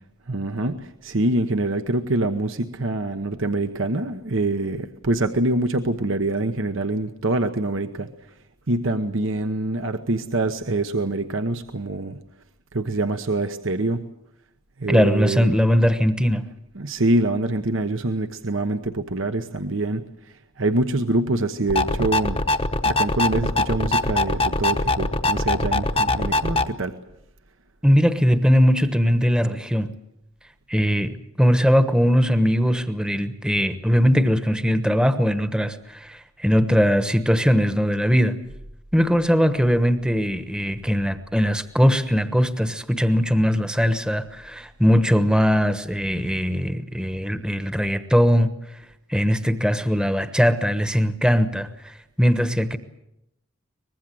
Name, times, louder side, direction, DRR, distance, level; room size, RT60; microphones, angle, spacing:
voice 1, 0.3-8.1 8.7-12.2 12.7-14.0 14.8-15.5 16.7-20.0 20.6-22.4 22.8-27.0, right 2 dB, 60° right, 8 dB, 1.1 m, -25 dB
voice 2, 14.9-16.4 27.8-29.9 30.7-38.4 38.9-48.5 49.1-52.8, equal, 5° right, 10 dB, 1.1 m, -20 dB
sound 1, 21.7-26.7, left 2 dB, 25° left, 1.0 m, -22 dB
24.0 x 20.5 x 7.8 m, 0.83 s
head